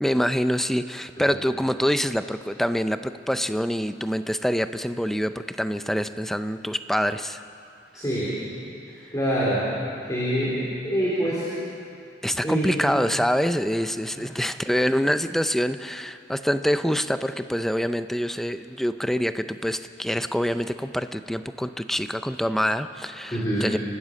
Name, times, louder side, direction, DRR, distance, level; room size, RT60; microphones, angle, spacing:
voice 1, 0.0-7.4 12.2-23.8, equal, ahead, 10 dB, 0.5 m, -25 dB
voice 2, 7.9-8.3 8.8-11.5 12.4-12.8 14.2-14.3 23.3-23.8, equal, 20° left, -7 dB, 3.5 m, -26 dB
28.5 x 12.5 x 7.7 m, 2.6 s
head